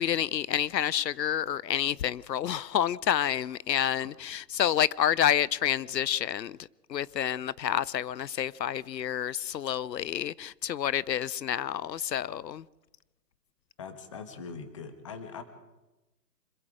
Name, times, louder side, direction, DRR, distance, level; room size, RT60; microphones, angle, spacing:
voice 1, 0.0-6.6 6.9-12.6, left 10 dB, 85° left, 0.7 m, -29 dB
voice 2, 13.8-15.4, left 5 dB, 20° left, 1.4 m, -41 dB
26.5 x 21.5 x 5.0 m
hypercardioid pair, 170°, 49 cm